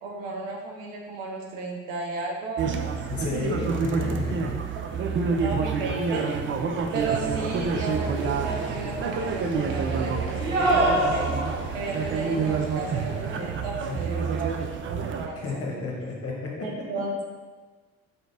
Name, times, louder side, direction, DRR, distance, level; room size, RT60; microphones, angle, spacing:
voice 1, 0.0-3.0 3.9-4.1 5.4-6.3 6.9-11.3 11.7-15.4 16.6-17.2, right 3 dB, 70° right, -1 dB, 0.9 m, -33 dB
sound 1, 2.6-15.3, right 5 dB, 30° right, 0.5 m, -28 dB
voice 2, 3.1-4.6 13.8-14.0 15.3-16.7, left 3 dB, 40° left, -2 dB, 1.2 m, -32 dB
sound 2, 6.9-13.5, right 1 dB, 90° right, 0.6 m, -30 dB
3.9 x 3.8 x 3.4 m, 1.4 s
figure-of-eight pair, 45°, 38 cm